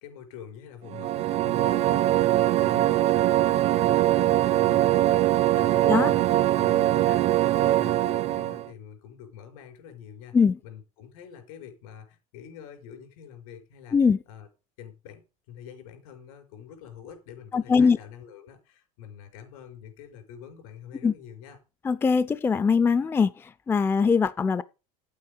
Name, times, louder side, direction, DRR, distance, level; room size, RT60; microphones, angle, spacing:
voice 1, 0.0-10.3 10.6-14.0 14.3-14.5 14.8-21.6, left 8 dB, 75° left, 5.5 m, -46 dB
sound 1, 0.9-8.7, right 14 dB, 35° right, 0.5 m, -22 dB
voice 2, 17.5-18.0 21.0-21.1 21.8-24.6, left 5 dB, 15° left, 0.4 m, -22 dB
9.4 x 8.8 x 5.2 m
supercardioid pair, 130°, 18 cm